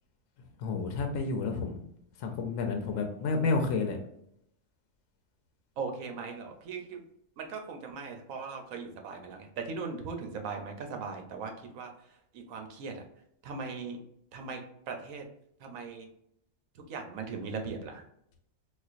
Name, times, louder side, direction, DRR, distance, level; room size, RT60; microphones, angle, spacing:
voice 1, 0.6-1.8 2.2-4.0, left 4 dB, 75° left, 3 dB, 1.0 m, -30 dB
voice 2, 5.8-7.0 7.4-11.9 12.3-13.0 13.4-14.0 14.3-14.6 14.9-15.3 15.6-16.1 16.8-18.0, right 5 dB, 75° right, 4 dB, 1.0 m, -39 dB
4.1 x 2.4 x 2.4 m, 0.74 s
omnidirectional pair, 1.4 m